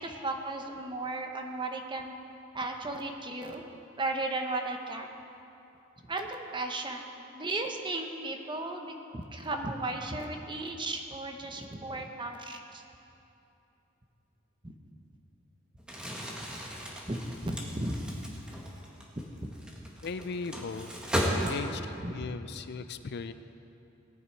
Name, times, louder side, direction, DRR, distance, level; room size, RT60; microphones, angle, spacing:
voice 1, 0.0-2.1 2.5-3.6 4.0-5.1 6.0-7.0 7.3-12.8 14.6-14.7 17.1-18.0 18.5-18.6 19.4-19.5 21.3-21.5 22.0-22.3, right 2 dB, 25° right, 3 dB, 1.0 m, -35 dB
Crumpling crinkling, 15.8-22.0, equal, 5° right, 1.5 m, -35 dB
voice 2, 20.0-20.9 21.5-21.8 22.1-23.3, left 4 dB, 55° left, 11 dB, 0.4 m, -37 dB
18.0 x 9.4 x 4.6 m, 2.8 s
head